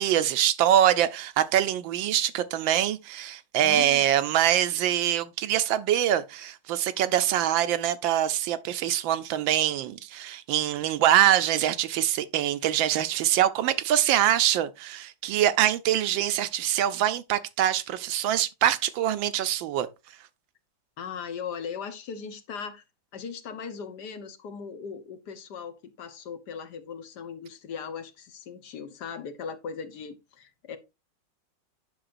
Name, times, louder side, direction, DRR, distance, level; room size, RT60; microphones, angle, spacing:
voice 1, 0.0-19.9, right 11 dB, 85° right, 1.4 m, -24 dB
voice 2, 3.6-4.0 21.0-22.8 23.1-30.8, left 6 dB, 65° left, 1.4 m, -38 dB
8.8 x 6.1 x 2.5 m
omnidirectional pair, 2.1 m